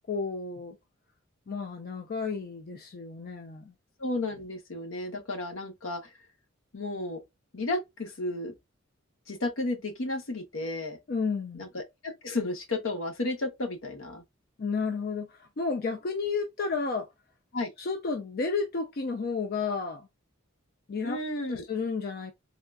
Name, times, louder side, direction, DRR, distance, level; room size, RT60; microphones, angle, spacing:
voice 1, 0.1-0.8 1.5-3.7 11.1-11.6 14.6-17.1 17.8-20.1 20.9-21.2 21.5-22.3, left 4 dB, 50° left, 0.5 m, -32 dB
voice 2, 4.0-6.2 6.7-7.2 7.5-8.5 9.3-11.0 11.5-14.2 17.5-17.7 21.0-21.6, left 2 dB, 75° left, 0.9 m, -33 dB
3.6 x 2.3 x 2.3 m
head